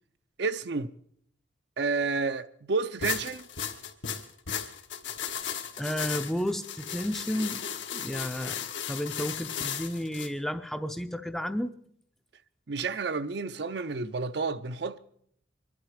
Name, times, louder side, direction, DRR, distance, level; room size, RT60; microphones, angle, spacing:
voice 1, 0.4-0.9 1.8-3.4 12.7-15.0, right 4 dB, 60° right, 0.6 m, -30 dB
sound 1, 3.0-10.3, left 8 dB, 75° left, 1.4 m, -35 dB
voice 2, 5.8-7.6 7.9-11.8, equal, ahead, 0.5 m, -32 dB
24.0 x 11.0 x 4.9 m
head